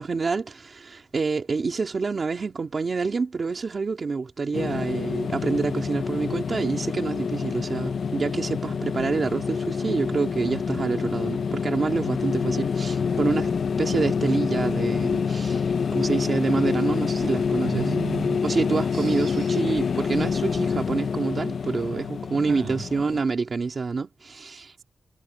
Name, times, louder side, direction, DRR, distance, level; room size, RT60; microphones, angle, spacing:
voice 1, 0.0-13.5 13.8-17.9 18.4-24.8, right 4 dB, 40° right, 2.2 m, -27 dB
sound 1, 4.5-23.2, left 6 dB, 55° left, 0.6 m, -27 dB
voice 2, 17.6-18.5 18.9-19.6 22.5-22.8 24.8-24.9, right 6 dB, 60° right, 7.2 m, -34 dB
wide cardioid pair, 160°, 0 cm